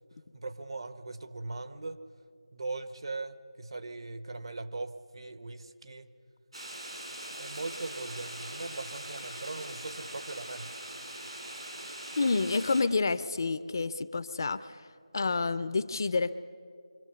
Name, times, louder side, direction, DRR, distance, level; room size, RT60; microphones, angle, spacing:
voice 1, 0.3-2.0 2.5-6.1 7.4-10.8, right 3 dB, 55° right, 10 dB, 1.1 m, -40 dB
sound 1, 6.5-12.8, right 1 dB, 75° right, 5.4 m, -42 dB
voice 2, 12.2-14.8 15.1-16.3, left 3 dB, 40° left, 14 dB, 0.6 m, -29 dB
25.0 x 25.0 x 6.8 m, 2.4 s
figure-of-eight pair, 165°, 3 cm